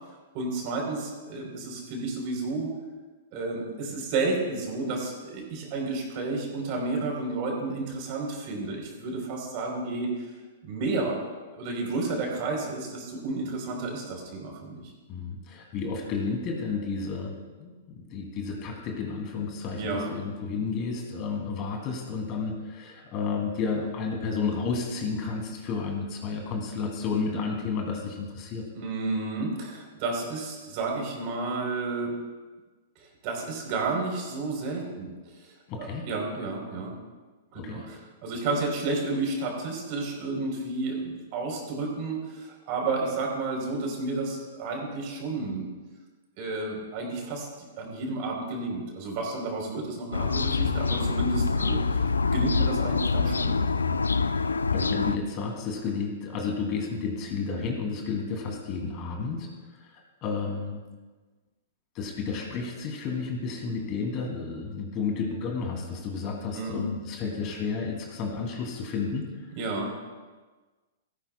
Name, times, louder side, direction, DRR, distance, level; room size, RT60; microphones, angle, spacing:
voice 1, 0.3-2.7 3.3-10.3 10.6-11.2 11.5-14.9 19.7-20.1 28.8-32.1 33.0-37.0 37.5-45.7 46.4-47.5 47.8-53.6 66.5-66.8 69.5-69.9, right 3 dB, 45° right, 0 dB, 3.6 m, -31 dB
voice 2, 15.1-28.7 35.7-36.1 37.6-37.9 54.7-59.5 59.8-60.8 61.9-69.5, left 5 dB, 35° left, 1 dB, 2.6 m, -32 dB
sound 1, 50.1-55.2, left 4 dB, 80° left, 0.5 m, -25 dB
17.0 x 14.5 x 2.2 m, 1.3 s
figure-of-eight pair, 110°, 0 cm